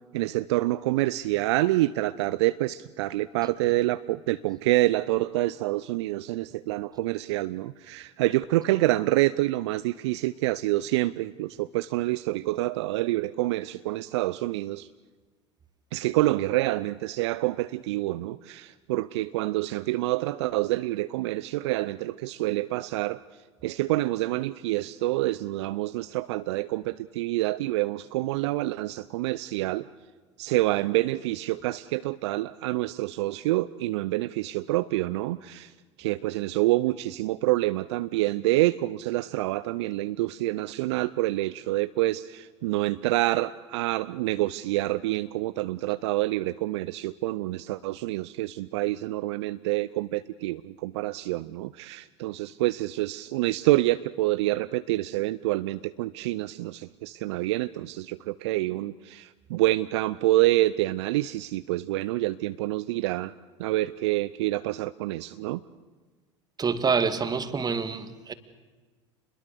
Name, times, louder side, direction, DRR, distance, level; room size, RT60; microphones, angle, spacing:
voice 1, 0.0-14.9 15.9-23.2 23.6-29.8 30.4-35.7 36.0-63.3 63.6-65.6, right 17 dB, 65° right, 14 dB, 0.7 m, -27 dB
voice 2, 66.6-68.3, right 5 dB, 25° right, 11 dB, 2.2 m, -26 dB
28.0 x 22.0 x 6.8 m, 1.3 s
figure-of-eight pair, 75°, 15 cm